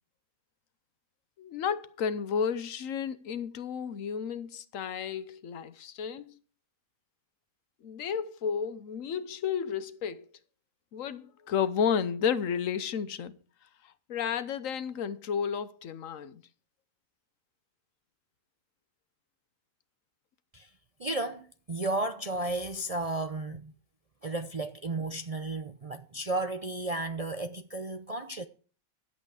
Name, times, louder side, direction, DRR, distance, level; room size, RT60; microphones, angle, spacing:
voice 1, 1.4-6.4 7.8-10.3 10.9-13.4 13.8-16.4, left 7 dB, 70° left, 1.1 m, -32 dB
voice 2, 21.0-23.7 24.2-28.4, right 2 dB, 45° right, 0.5 m, -33 dB
11.5 x 8.3 x 4.9 m
omnidirectional pair, 1.5 m